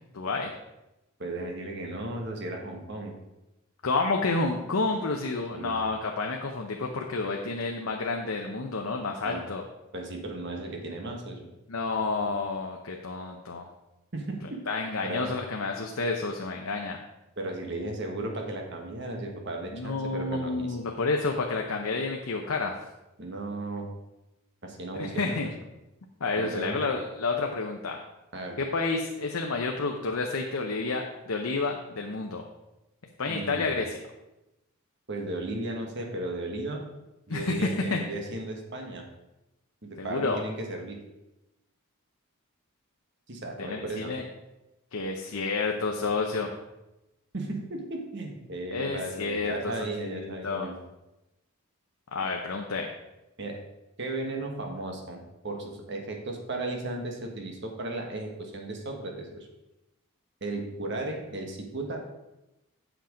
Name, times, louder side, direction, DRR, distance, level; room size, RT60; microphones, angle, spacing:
voice 1, 0.1-0.5 3.8-9.6 11.7-13.7 14.7-17.0 19.7-22.7 25.0-25.5 26.2-28.0 28.6-32.4 33.2-34.0 37.3-38.0 40.0-40.4 43.7-44.2 44.9-46.5 48.7-50.7 52.1-52.9, left 3 dB, 75° left, 2 dB, 0.8 m, -30 dB
voice 2, 1.2-3.1 5.5-5.8 9.2-9.4 9.9-11.5 14.1-14.6 15.0-15.3 17.4-20.8 23.2-23.9 24.6-25.4 26.4-26.8 28.3-28.6 33.3-33.7 35.1-36.8 37.3-39.1 39.8-41.0 43.3-44.2 47.3-50.8 53.4-53.6 54.0-59.5 60.4-62.1, right 2 dB, 55° right, 2 dB, 1.4 m, -35 dB
8.1 x 6.0 x 5.1 m, 0.96 s
head